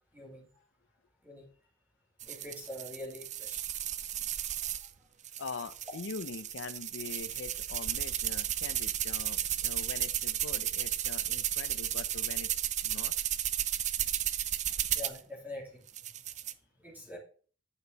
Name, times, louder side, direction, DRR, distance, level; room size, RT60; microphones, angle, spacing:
voice 1, 0.1-0.6 1.2-1.4 2.2-3.6 14.9-15.8 16.8-17.2, left 1 dB, 10° right, -4 dB, 3.0 m, -44 dB
sound 1, 2.2-4.9 5.2-15.2 15.9-16.5, right 11 dB, 40° right, 0.5 m, -34 dB
voice 2, 5.4-13.1, left 4 dB, 85° left, 15 dB, 0.6 m, -43 dB
9.3 x 6.8 x 4.0 m, 0.42 s
head